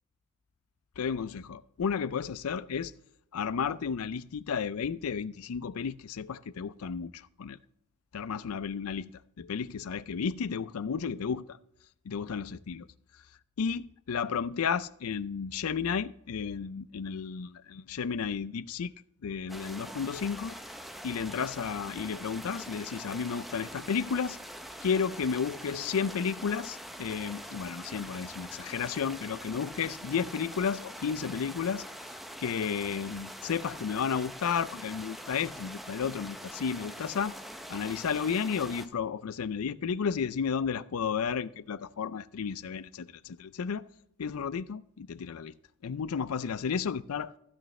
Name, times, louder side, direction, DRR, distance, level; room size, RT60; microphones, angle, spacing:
voice 1, 1.0-2.9 3.3-7.6 8.1-9.1 9.4-11.6 12.1-12.8 13.6-18.9 19.2-20.6 21.0-24.4 24.8-31.9 32.4-37.4 37.7-43.9 44.2-45.5 45.8-47.3, left 6 dB, 80° left, 0.5 m, -32 dB
sound 1, 19.5-38.9, equal, ahead, 0.6 m, -44 dB
15.0 x 6.4 x 3.2 m
head